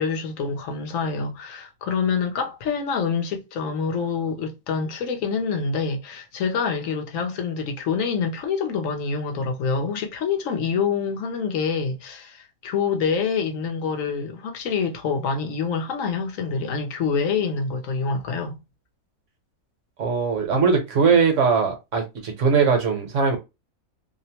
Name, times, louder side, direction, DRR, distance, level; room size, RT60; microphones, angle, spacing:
voice 1, 0.0-18.6, left 5 dB, 70° left, 0.9 m, -26 dB
voice 2, 20.0-23.4, right 5 dB, 65° right, 1.1 m, -20 dB
2.8 x 2.0 x 2.7 m
omnidirectional pair, 1.5 m